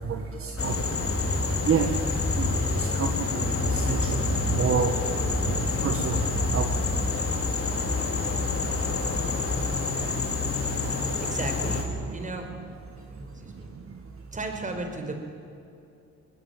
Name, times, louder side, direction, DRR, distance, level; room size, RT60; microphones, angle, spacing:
voice 1, 0.1-0.7 1.7-1.9 2.4-3.1 3.4-3.5 3.7-4.1 4.5-4.9 5.4-6.2 6.5-6.7, right 6 dB, 45° right, 5 dB, 1.8 m, -28 dB
sound 1, 0.6-11.8, left 3 dB, 45° left, 4.3 m, -27 dB
voice 2, 11.2-12.5 13.1-13.7 14.3-15.2, right 2 dB, 25° right, 4 dB, 5.0 m, -35 dB
21.5 x 20.0 x 9.3 m, 2.6 s
cardioid pair, 90°, 30 cm